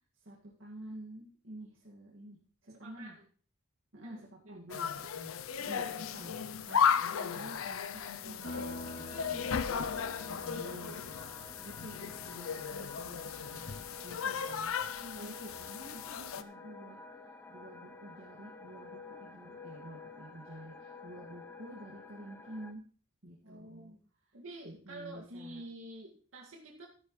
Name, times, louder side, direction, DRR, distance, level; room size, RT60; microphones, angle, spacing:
voice 1, 0.2-3.2 3.9-5.3 5.6-6.4 6.7-9.5 10.3-11.0 11.5-17.0 17.5-22.8 23.2-23.9 24.6-25.6, right 1 dB, 65° right, -3 dB, 2.1 m, -50 dB
voice 2, 2.7-3.3 4.0-4.7 9.2-10.3 15.0-15.4 23.4-24.0 24.3-26.9, right 1 dB, 85° right, -1 dB, 2.2 m, -49 dB
sound 1, 4.7-16.4, left 7 dB, 90° left, 0.6 m, -35 dB
sound 2, 8.4-12.7, left 2 dB, 65° left, 2.6 m, -47 dB
sound 3, 8.4-22.7, left 3 dB, 10° left, 0.7 m, -50 dB
13.5 x 10.0 x 3.2 m, 0.43 s
head